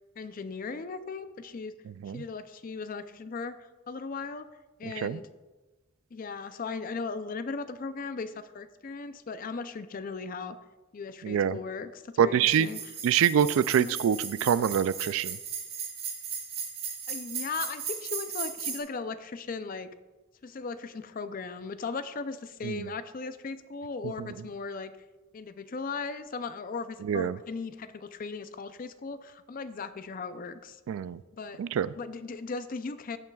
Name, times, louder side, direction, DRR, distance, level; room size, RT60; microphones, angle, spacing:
voice 1, 0.2-1.7 2.1-3.6 3.9-4.5 4.8-5.3 6.1-10.6 10.9-12.9 13.8-14.0 17.1-19.9 20.4-25.0 25.3-30.8 31.3-31.6 32.0-33.2, left 4 dB, 40° left, 11 dB, 0.4 m, -37 dB
voice 2, 4.9-5.2 11.2-11.6 12.2-12.7 13.0-15.4 22.6-22.9 27.0-27.4 30.9-31.2 31.6-31.9, right 8 dB, 85° right, 17 dB, 0.3 m, -25 dB
sound 1, 12.4-18.8, right 6 dB, 50° right, 1.4 m, -37 dB
15.0 x 5.8 x 2.3 m, 1.2 s
head